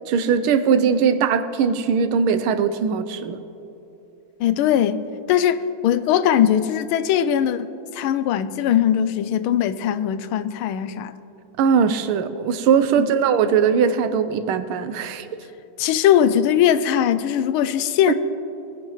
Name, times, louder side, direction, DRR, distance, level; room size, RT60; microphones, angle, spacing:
voice 1, 0.1-3.4 11.6-15.3 18.1-18.2, right 6 dB, 90° right, 11 dB, 1.6 m, -20 dB
voice 2, 4.4-11.1 13.0-13.1 15.8-18.2, left 10 dB, 90° left, 13 dB, 1.5 m, -20 dB
21.5 x 10.5 x 3.1 m, 2.9 s
omnidirectional pair, 2.3 m